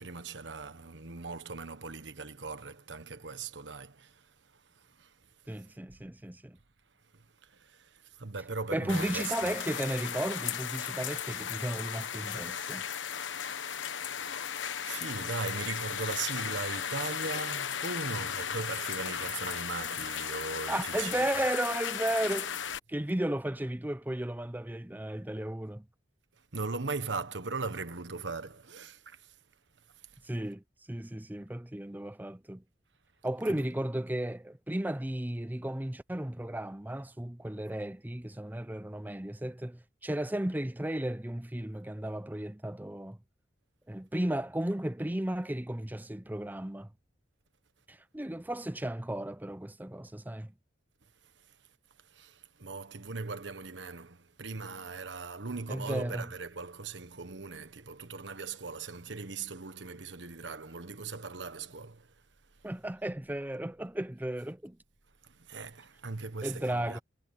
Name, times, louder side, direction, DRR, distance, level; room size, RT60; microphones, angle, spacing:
voice 1, 0.0-4.2 5.0-5.1 5.6-5.7 7.1-9.5 14.1-14.3 14.8-21.3 26.5-29.3 52.1-62.1 65.2-67.0, right 4 dB, 75° right, 1.4 m, -39 dB
voice 2, 5.5-6.6 8.7-12.9 20.7-22.5 22.9-25.8 30.2-32.6 33.2-43.2 43.9-46.9 47.9-50.5 55.7-56.3 62.6-64.8 66.4-67.0, right 1 dB, 10° right, 0.6 m, -34 dB
sound 1, 8.9-22.8, left 8 dB, 85° left, 1.2 m, -36 dB
head